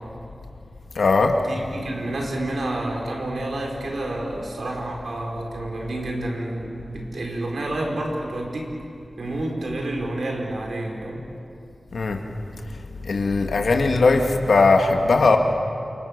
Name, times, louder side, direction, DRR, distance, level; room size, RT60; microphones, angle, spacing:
voice 1, 1.0-1.3 11.9-12.2 13.0-15.4, left 3 dB, 85° left, 3 dB, 2.1 m, -18 dB
voice 2, 1.5-8.7 9.2-11.2, right 1 dB, 75° right, 0 dB, 5.0 m, -29 dB
29.5 x 28.0 x 6.8 m, 2.7 s
wide cardioid pair, 105°, 0 cm